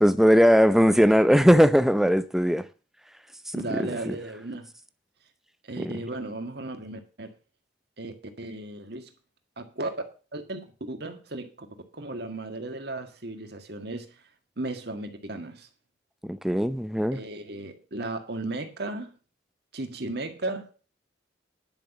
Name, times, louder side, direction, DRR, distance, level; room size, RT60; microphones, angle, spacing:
voice 1, 0.0-2.6 4.1-4.2 16.3-17.2, equal, ahead, 0.6 m, -19 dB
voice 2, 3.5-4.7 5.7-7.3 8.0-9.1 9.6-9.9 10.3-11.7 11.9-14.2 14.6-15.7 17.1-19.1 19.7-20.7, right 2 dB, 60° right, 1.8 m, -35 dB
10.5 x 6.1 x 7.2 m
head